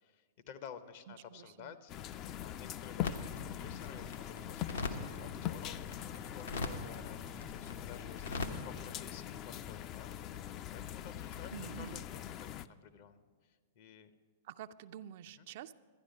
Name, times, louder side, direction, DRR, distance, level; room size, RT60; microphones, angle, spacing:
voice 1, 0.0-1.9 2.4-5.9 6.3-7.2 7.5-11.5 11.8-14.1 15.4-15.5, left 8 dB, 55° left, 10 dB, 0.8 m, -53 dB
voice 2, 1.1-1.7 11.5-12.0 14.4-15.7, right 10 dB, 55° right, 12 dB, 0.4 m, -48 dB
sound 1, 1.9-12.7, left 11 dB, 35° left, 0.3 m, -42 dB
sound 2, 3.0-8.5, left 3 dB, 80° left, 1.0 m, -43 dB
12.5 x 10.0 x 5.3 m, 1.5 s
hypercardioid pair, 105°, 0 cm